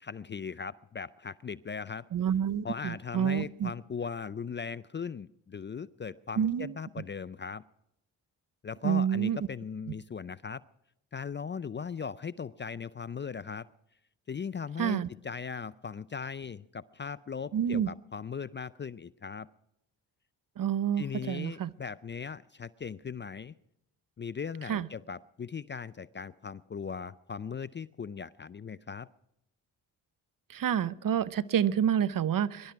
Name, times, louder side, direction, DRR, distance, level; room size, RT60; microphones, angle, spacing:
voice 1, 0.0-2.1 2.6-7.6 8.6-10.6 11.1-13.7 14.3-19.5 21.0-23.5 24.2-29.1, left 6 dB, 25° left, 18 dB, 0.5 m, -38 dB
voice 2, 2.1-3.7 6.4-6.7 8.8-9.4 14.8-15.1 17.5-17.9 20.6-21.7 24.7-24.9 30.5-32.7, right 9 dB, 45° right, 17 dB, 0.8 m, -28 dB
22.0 x 12.0 x 4.7 m, 0.80 s
supercardioid pair, 55°, 45 cm